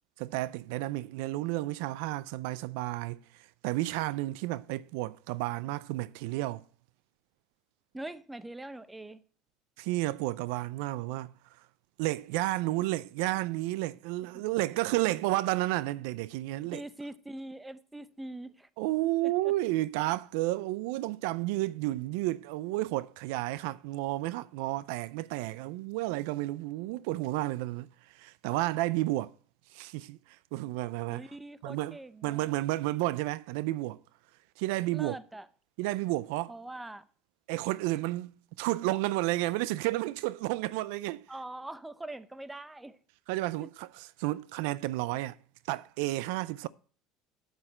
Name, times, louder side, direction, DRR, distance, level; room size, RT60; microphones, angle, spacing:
voice 1, 0.2-3.2 3.6-6.6 9.8-11.3 12.0-16.8 18.8-27.9 28.1-29.3 29.7-30.2 30.5-31.3 31.6-34.0 34.6-35.2 35.8-36.5 37.5-41.2 43.3-45.4 45.7-46.7, right 18 dB, 80° right, 0.4 m, -31 dB
voice 2, 7.9-9.2 14.3-14.4 16.6-18.7 19.2-19.5 31.1-32.5 34.9-35.5 36.5-37.1 41.3-43.0 43.6-43.7, right 1 dB, 10° right, 0.7 m, -43 dB
8.1 x 7.9 x 4.3 m
supercardioid pair, 110°, 0 cm